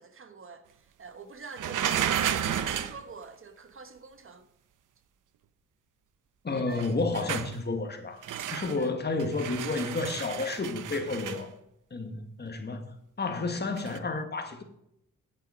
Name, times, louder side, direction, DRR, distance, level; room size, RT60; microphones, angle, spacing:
voice 1, 0.0-4.5 6.5-6.9 8.8-8.9, right 4 dB, 45° right, 1.2 m, -47 dB
sound 1, 1.6-3.0 6.7-7.6 8.2-8.8 9.2-11.4 13.8-14.0, right 9 dB, 80° right, 0.9 m, -32 dB
voice 2, 6.4-11.5 11.9-14.6, left 3 dB, 35° left, 1.6 m, -31 dB
10.5 x 8.7 x 5.0 m
cardioid pair, 115°, 31 cm